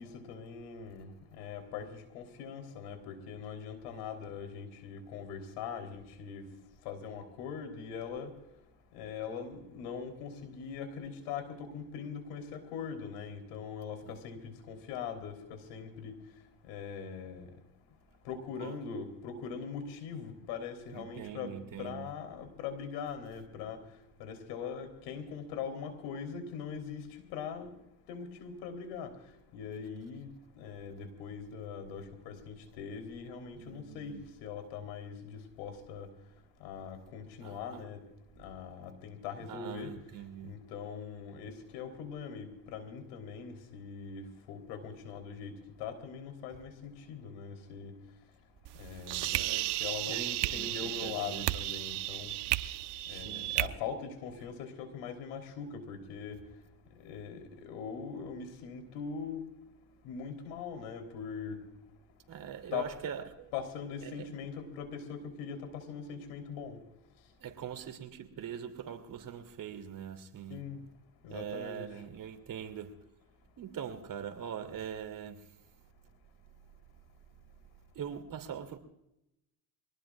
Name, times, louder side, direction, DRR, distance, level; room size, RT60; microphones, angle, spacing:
voice 1, 0.0-6.4 6.9-8.3 8.9-16.2 16.6-17.5 18.3-23.8 24.2-27.7 28.1-29.1 29.5-30.3 30.6-34.1 34.4-36.1 36.6-38.0 38.4-39.9 40.4-45.5 45.8-47.9 48.8-49.4 49.8-52.3 53.1-56.4 57.0-59.4 60.0-61.6 62.7-62.9 63.5-66.8 70.5-70.8 71.2-71.9, left 6 dB, 90° left, 3.7 m, -41 dB
voice 2, 20.9-22.1 33.6-34.2 37.4-37.8 39.5-40.5 49.3-49.8 50.1-51.5 53.1-53.5 62.3-63.5 64.0-64.3 67.4-70.6 71.3-72.9 73.6-75.5 77.9-78.8, right 8 dB, 50° right, 2.8 m, -42 dB
sound 1, 48.6-53.7, right 16 dB, 70° right, 0.9 m, -34 dB
25.0 x 19.0 x 2.4 m
cardioid pair, 100°, 43 cm